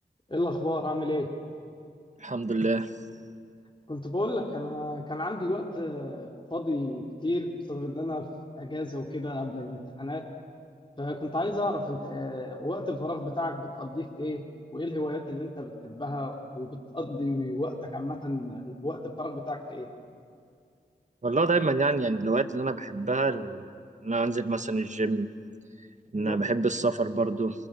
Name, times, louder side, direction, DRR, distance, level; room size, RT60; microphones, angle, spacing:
voice 1, 0.3-1.3 3.9-8.3 8.6-10.2 11.0-14.4 14.7-19.9 26.1-26.4, left 1 dB, 30° left, 1 dB, 3.0 m, -32 dB
voice 2, 2.2-2.9 21.2-23.7 24.0-25.3 26.1-27.5, right 3 dB, 45° right, 9 dB, 1.5 m, -27 dB
28.5 x 27.0 x 7.6 m, 2.3 s
cardioid pair, 40°, 18 cm